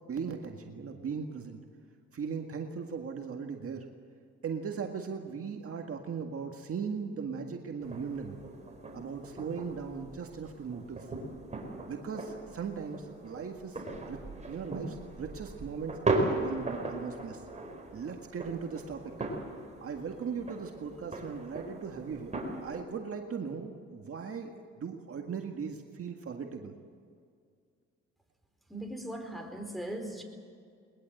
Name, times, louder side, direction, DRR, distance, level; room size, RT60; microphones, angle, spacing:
voice 1, 0.1-1.6 2.1-3.9 4.4-8.4 8.9-11.1 11.9-13.8 14.1-14.2 14.4-17.4 17.9-19.1 19.8-22.3 22.6-26.8, right 6 dB, 50° right, 3 dB, 1.9 m, -38 dB
sound 1, 7.8-22.8, right 2 dB, 25° right, 4.6 m, -38 dB
voice 2, 28.7-30.2, right 1 dB, ahead, 2 dB, 4.2 m, -39 dB
21.5 x 20.5 x 7.9 m, 2.2 s
cardioid pair, 90°, 30 cm